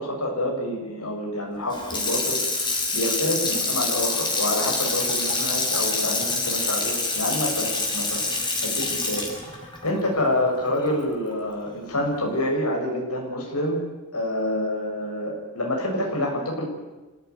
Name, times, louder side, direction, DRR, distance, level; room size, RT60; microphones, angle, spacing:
voice 1, 0.0-9.6 9.8-13.8 14.1-16.6, left 1 dB, 90° left, 0 dB, 7.1 m, -27 dB
Water tap faucet / Sink (filling or washing), 1.7-10.9 11.3-11.4, left 3 dB, 20° left, 5.2 m, -26 dB
27.0 x 17.0 x 9.7 m, 1.2 s
head